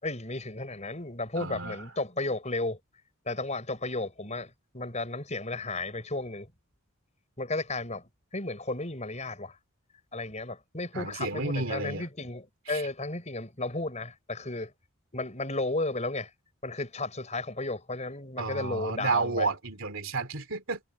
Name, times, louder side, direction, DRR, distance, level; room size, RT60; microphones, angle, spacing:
voice 1, 0.0-2.8 3.3-6.5 7.4-9.6 10.1-14.7 15.1-16.3 16.6-19.5, left 2 dB, 30° left, 5.7 m, -34 dB
voice 2, 1.4-1.8 10.9-12.0 12.7-12.8 18.4-20.8, right 3 dB, 60° right, 3.2 m, -31 dB
head